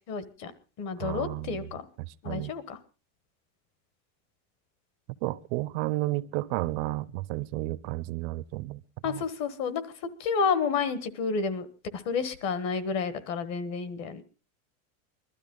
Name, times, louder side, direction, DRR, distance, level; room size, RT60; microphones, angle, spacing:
voice 1, 0.1-0.5 0.8-1.9 2.2-2.8 9.0-9.8 10.2-11.7 11.9-14.2, left 5 dB, 40° left, 1.4 m, -30 dB
voice 2, 1.0-1.7 2.2-2.5 5.2-9.2, right 18 dB, 55° right, 0.6 m, -32 dB
21.5 x 12.5 x 3.8 m
cardioid pair, 170°, 41 cm